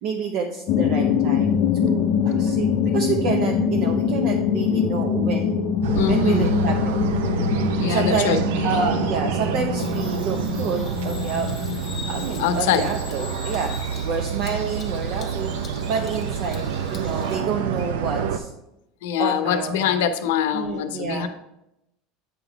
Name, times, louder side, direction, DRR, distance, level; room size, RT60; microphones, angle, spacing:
voice 1, 0.0-2.7 2.9-5.6 6.1-7.0 7.9-11.5 12.1-13.8 14.0-15.5 15.9-18.5 19.2-20.0 20.5-21.3, right 6 dB, 50° right, 2 dB, 0.7 m, -28 dB
sound 1, 0.7-13.2, left 7 dB, 45° left, 0.5 m, -24 dB
sound 2, 5.8-18.4, right 7 dB, 90° right, 0.6 m, -27 dB
voice 2, 5.9-6.4 7.8-8.4 12.4-12.9 19.0-21.3, left 9 dB, 85° left, 10 dB, 0.7 m, -23 dB
Bird vocalization bird call bird song, 9.8-17.3, left 5 dB, 20° left, 0.9 m, -42 dB
8.4 x 4.0 x 4.6 m, 0.84 s
cardioid pair, 170°, 0 cm